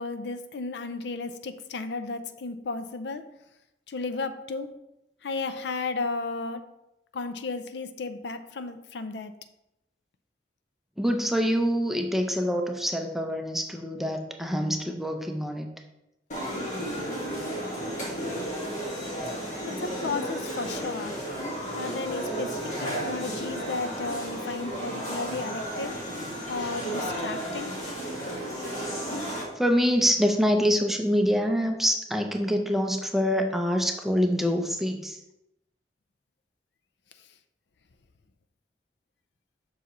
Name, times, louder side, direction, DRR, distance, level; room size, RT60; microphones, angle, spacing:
voice 1, 0.0-3.3 3.9-4.8 5.2-6.7 7.1-9.3 19.6-21.2 21.7-26.0 26.5-27.7, left 3 dB, 75° left, 10 dB, 0.5 m, -34 dB
voice 2, 11.0-15.7 29.6-35.2, equal, ahead, 3 dB, 0.5 m, -25 dB
sound 1, 16.3-29.4, equal, 45° left, 1.7 m, -33 dB
7.3 x 5.6 x 3.0 m, 0.87 s
head